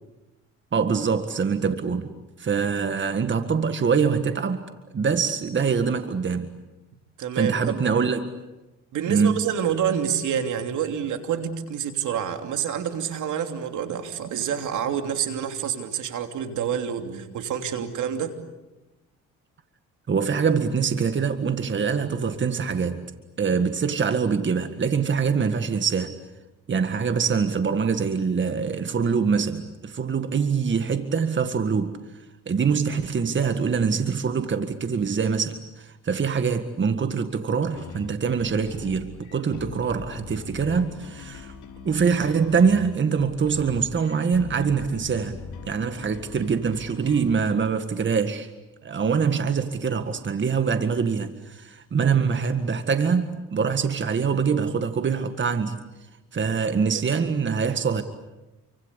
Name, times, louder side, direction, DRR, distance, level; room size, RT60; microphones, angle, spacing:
voice 1, 0.7-2.1 2.4-4.6 4.9-6.5 7.3-8.3 9.1-9.4 20.1-23.1 23.4-26.2 26.7-32.0 32.5-41.5 41.8-45.4 45.7-48.5 48.8-55.8 56.3-58.0, right 6 dB, 40° right, 9 dB, 1.9 m, -24 dB
voice 2, 7.2-7.8 8.9-18.3 56.9-57.0, right 8 dB, 80° right, 6 dB, 3.1 m, -28 dB
sound 1, 37.7-47.4, left 5 dB, 75° left, 4.7 m, -41 dB
29.0 x 24.5 x 8.3 m, 1.0 s
cardioid pair, 90°, 30 cm